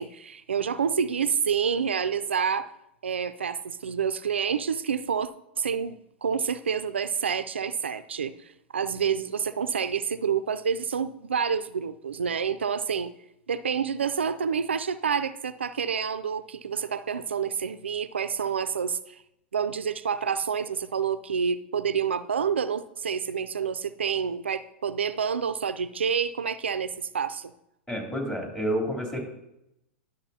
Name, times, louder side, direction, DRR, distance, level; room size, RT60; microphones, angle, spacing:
voice 1, 0.0-2.7 3.0-5.3 5.6-8.3 8.7-13.1 13.5-19.2 19.5-27.5, right 7 dB, 90° right, 14 dB, 0.4 m, -28 dB
voice 2, 27.9-29.3, equal, 10° left, -1 dB, 3.0 m, -29 dB
11.5 x 6.4 x 2.8 m, 0.82 s
hypercardioid pair, 105°, 6 cm